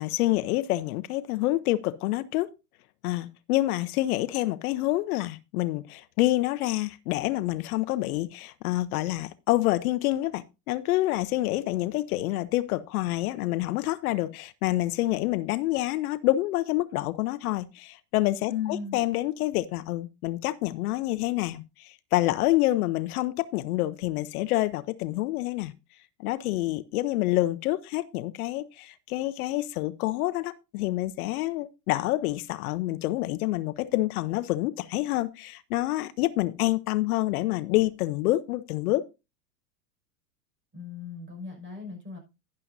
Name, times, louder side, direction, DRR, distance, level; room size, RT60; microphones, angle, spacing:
voice 1, 0.0-2.5 3.0-18.5 18.9-25.7 26.2-39.0, left 17 dB, 60° left, 0.7 m, -27 dB
voice 2, 18.5-19.0 40.7-42.2, left 7 dB, 25° right, 5.6 m, -36 dB
12.0 x 11.0 x 2.6 m
supercardioid pair, 125°, 49 cm